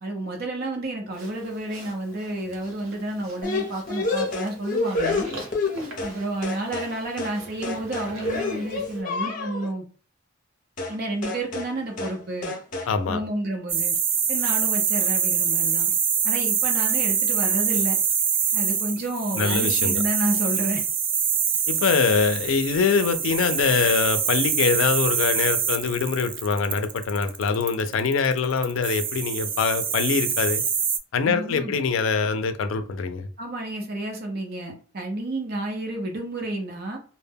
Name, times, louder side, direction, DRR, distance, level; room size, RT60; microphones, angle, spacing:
voice 1, 0.0-5.3 6.0-9.8 10.9-12.5 13.1-13.9 14.3-15.9 16.2-18.0 18.5-20.8 31.2-31.8 33.4-37.0, right 1 dB, 50° right, 2 dB, 0.7 m, -30 dB
Livestock farm animals working animals, 1.1-9.0, right 2 dB, 80° right, 0.9 m, -44 dB
sound 1, 3.4-6.2 6.4-6.9 7.2-7.4 7.6-9.7 10.8-11.0 11.2-11.7 12.0-12.2 12.4-12.9, left 3 dB, 40° left, 0.7 m, -28 dB
voice 2, 12.9-13.2 19.3-20.0 21.7-30.6 31.1-33.3, left 5 dB, 75° left, 10 dB, 0.4 m, -23 dB
sound 2, 13.7-31.0, right 7 dB, 25° right, 0.3 m, -25 dB
2.1 x 2.1 x 3.3 m, 0.40 s
head